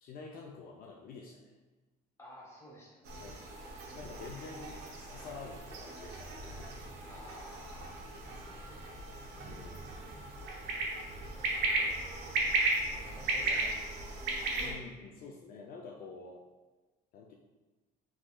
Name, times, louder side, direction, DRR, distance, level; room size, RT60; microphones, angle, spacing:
voice 1, 0.0-1.5 3.2-3.3 4.0-6.9 9.4-9.9 14.6-16.5 17.1-17.3, left 4 dB, 60° left, 0 dB, 0.4 m, -48 dB
voice 2, 2.2-3.2 7.0-8.8 10.8-12.3 12.8-13.9, equal, 15° left, -4 dB, 1.0 m, -54 dB
sound 1, 3.0-14.7, right 2 dB, 80° right, 0.6 m, -36 dB
3.6 x 3.0 x 2.2 m, 1.2 s
cardioid pair, 110°, 17 cm